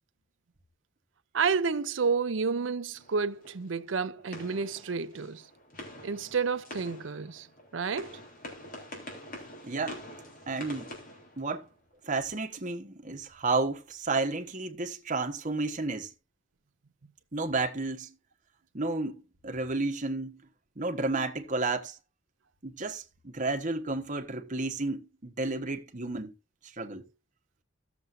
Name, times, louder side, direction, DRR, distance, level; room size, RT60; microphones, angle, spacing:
voice 1, 1.3-5.4 6.0-7.5 7.7-8.2, right 5 dB, 70° right, 0.6 m, -30 dB
sound 1, 2.9-12.0, left 1 dB, 50° left, 3.8 m, -46 dB
voice 2, 9.6-10.0 10.5-10.9 11.4-11.7 12.0-16.1 17.3-18.1 18.7-20.4 20.8-22.0 22.6-26.3 26.8-27.0, right 3 dB, 40° right, 1.2 m, -32 dB
17.0 x 7.1 x 2.6 m
head